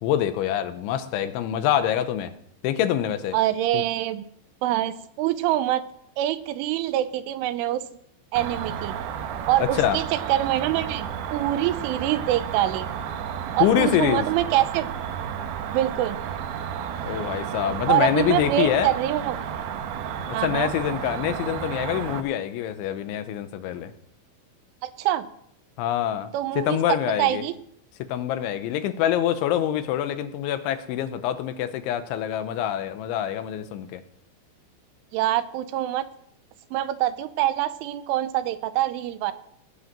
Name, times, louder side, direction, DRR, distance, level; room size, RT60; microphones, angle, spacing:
voice 1, 0.0-2.3 2.6-3.4 3.7-3.8 9.6-10.0 13.6-14.3 17.0-18.9 20.2-23.9 25.8-27.4 28.0-34.0, left 10 dB, 80° left, 11 dB, 3.1 m, -25 dB
voice 2, 3.3-4.2 4.6-5.8 6.2-7.8 8.3-9.0 9.5-12.9 13.6-14.9 15.7-16.2 17.9-19.4 20.3-20.7 24.8-25.3 26.3-26.8 27.2-27.5 35.1-36.0 36.7-39.3, right 13 dB, 90° right, 12 dB, 3.3 m, -25 dB
Cricket, 8.4-22.2, right 8 dB, 70° right, 2.4 m, -32 dB
18.0 x 8.1 x 7.4 m, 0.70 s
omnidirectional pair, 5.6 m